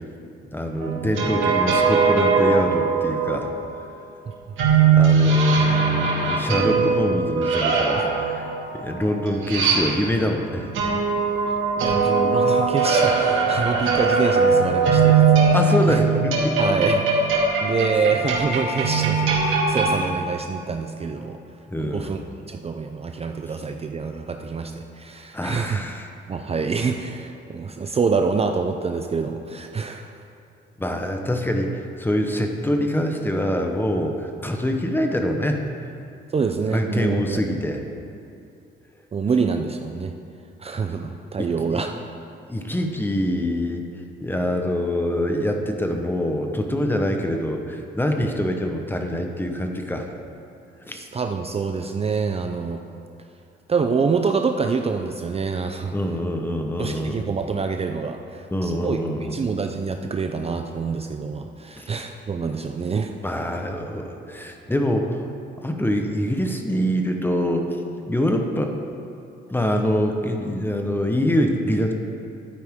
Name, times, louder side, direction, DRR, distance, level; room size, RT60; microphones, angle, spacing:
voice 1, 0.5-3.5 4.7-8.5 8.7-10.7 15.5-16.6 21.7-22.1 25.3-26.1 30.8-35.6 36.7-37.8 41.4-41.8 42.5-43.8 44.2-50.1 50.9-51.0 55.9-57.2 58.5-59.4 61.8-61.9 63.2-65.2 65.6-67.8 68.1-68.8 69.5-71.9, equal, 10° left, 3 dB, 1.0 m, -25 dB
sound 1, 0.8-3.4 4.6-10.3 10.7-19.9, right 4 dB, 80° right, 2.3 m, -20 dB
voice 2, 11.8-15.6 15.9-16.0 16.6-17.3 17.6-21.4 21.8-22.2 22.5-25.8 26.3-30.1 36.3-37.4 39.1-40.1 40.6-41.9 50.9-52.8 53.7-55.9 56.8-59.0 59.3-63.1, right 5 dB, 30° right, 5 dB, 0.5 m, -26 dB
11.5 x 9.4 x 3.7 m, 2.7 s
cardioid pair, 90°, 20 cm